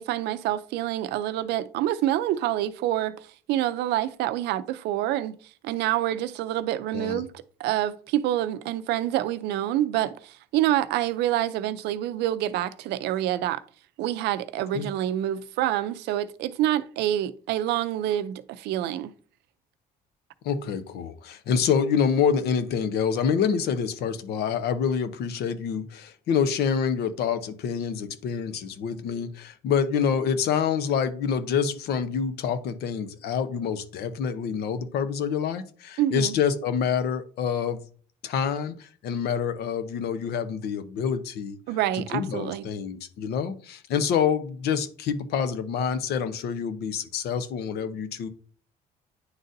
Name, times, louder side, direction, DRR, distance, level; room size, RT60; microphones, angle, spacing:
voice 1, 0.0-5.4 5.6-7.3 7.6-13.6 14.0-19.1 36.0-36.3 41.7-42.6, right 13 dB, 85° right, 0.5 m, -27 dB
voice 2, 20.4-37.8 38.2-41.6 41.9-48.3, left 7 dB, 70° left, 0.8 m, -27 dB
9.6 x 3.9 x 2.6 m
cardioid pair, 110°, 17 cm